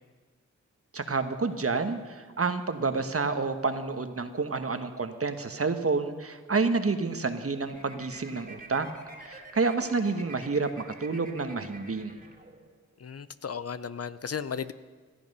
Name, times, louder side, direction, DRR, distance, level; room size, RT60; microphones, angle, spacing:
voice 1, 0.9-8.9 9.2-12.2, right 4 dB, 50° right, 8 dB, 1.3 m, -29 dB
sound 1, 7.6-12.9, right 2 dB, 25° right, 2.5 m, -48 dB
voice 2, 13.0-14.7, left 7 dB, 50° left, 14 dB, 0.7 m, -35 dB
17.5 x 13.0 x 5.5 m, 1.4 s
cardioid pair, 40°, 31 cm